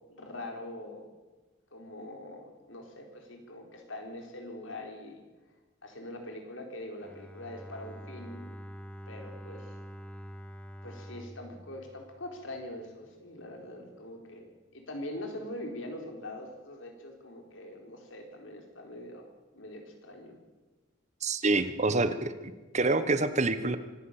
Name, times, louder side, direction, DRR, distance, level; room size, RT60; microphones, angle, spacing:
voice 1, 0.1-1.1 1.7-5.2 5.8-8.5 9.1-9.7 10.8-14.4 14.7-20.4, left 1 dB, 80° left, 3 dB, 4.4 m, -43 dB
Bowed string instrument, 7.0-12.9, equal, 5° left, 0.8 m, -46 dB
voice 2, 21.2-22.3 22.7-23.8, right 3 dB, 35° right, 12 dB, 1.2 m, -26 dB
24.5 x 12.0 x 8.8 m, 1.2 s
head